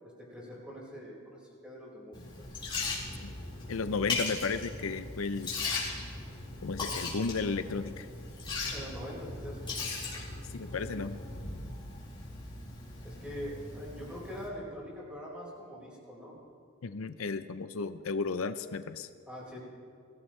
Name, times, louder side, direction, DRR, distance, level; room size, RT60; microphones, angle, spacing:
voice 1, 0.0-2.5 8.7-9.7 13.0-16.4 19.3-19.6, equal, 5° right, -5 dB, 5.0 m, -43 dB
Liquid, 2.1-14.5, left 3 dB, 25° left, 4.4 m, -38 dB
voice 2, 3.7-5.6 6.6-8.1 10.5-11.2 16.8-19.1, left 4 dB, 80° left, 11 dB, 0.6 m, -34 dB
23.5 x 15.5 x 3.3 m, 2.4 s
head